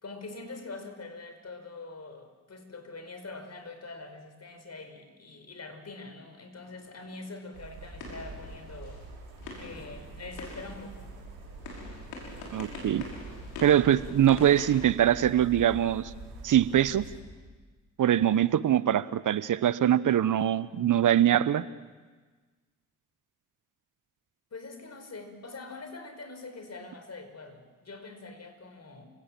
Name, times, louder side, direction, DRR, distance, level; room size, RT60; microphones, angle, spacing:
voice 1, 0.0-9.1 9.6-11.1 24.5-29.1, left 3 dB, 40° left, 7 dB, 5.3 m, -44 dB
sound 1, 6.6-15.7, left 3 dB, 75° left, 5.7 m, -46 dB
sound 2, 7.5-17.2, right 3 dB, 75° right, 5.2 m, -45 dB
voice 2, 12.5-13.0 13.6-16.1 16.4-17.0 18.0-21.6, right 11 dB, 55° right, 17 dB, 1.1 m, -23 dB
29.5 x 18.5 x 7.7 m, 1.4 s
hypercardioid pair, 45°, 38 cm